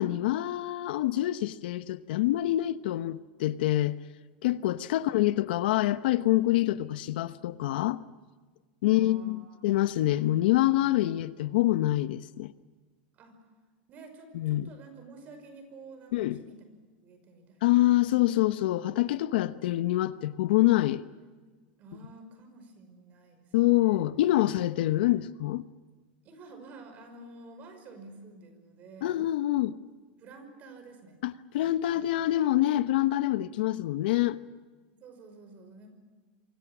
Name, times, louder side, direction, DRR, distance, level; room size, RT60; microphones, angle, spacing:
voice 1, 0.0-4.0 4.4-8.0 8.8-12.5 14.3-14.7 16.1-16.4 17.6-21.0 23.5-25.6 29.0-29.7 31.2-34.4, left 15 dB, 75° left, 1.0 m, -26 dB
voice 2, 8.9-9.7 13.1-13.4 13.9-18.0 18.9-19.2 21.8-24.1 24.4-24.8 26.2-29.2 30.2-31.2 31.6-32.1 34.9-35.9, right 3 dB, 30° right, 5.4 m, -51 dB
27.5 x 24.5 x 6.2 m
supercardioid pair, 165°, 5 cm